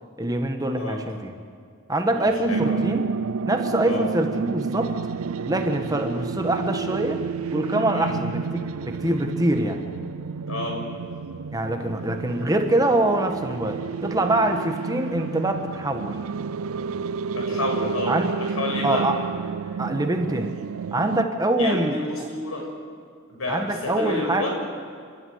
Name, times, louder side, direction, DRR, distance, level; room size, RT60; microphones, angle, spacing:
voice 1, 0.2-1.3 1.9-3.0 3.5-4.9 5.5-7.2 7.5-9.8 11.5-16.2 18.1-18.3 18.8-19.2 19.8-20.5 20.9-22.0 23.5-24.5, right 1 dB, 15° right, 5 dB, 1.5 m, -24 dB
voice 2, 2.1-2.8 3.8-4.0 7.9-8.1 10.5-10.8 17.3-19.0 21.6-22.6 23.3-24.5, left 1 dB, 85° left, 0 dB, 6.9 m, -30 dB
sound 1, 2.5-21.2, right 5 dB, 90° right, 0.5 m, -30 dB
29.5 x 12.5 x 9.5 m, 2.1 s
head